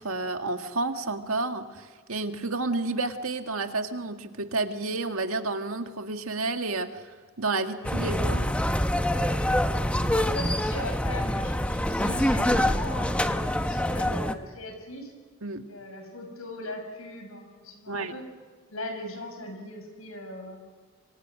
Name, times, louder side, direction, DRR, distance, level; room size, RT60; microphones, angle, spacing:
voice 1, 0.0-7.0 7.4-8.6 15.4-15.6 17.9-18.1, right 3 dB, 85° right, 6 dB, 1.8 m, -30 dB
sound 1, 7.8-14.3, left 1 dB, 5° left, 0.9 m, -25 dB
voice 2, 10.1-15.1 15.5-18.2 18.7-20.6, left 1 dB, 80° left, 5 dB, 6.5 m, -39 dB
28.0 x 24.0 x 6.3 m, 1.5 s
head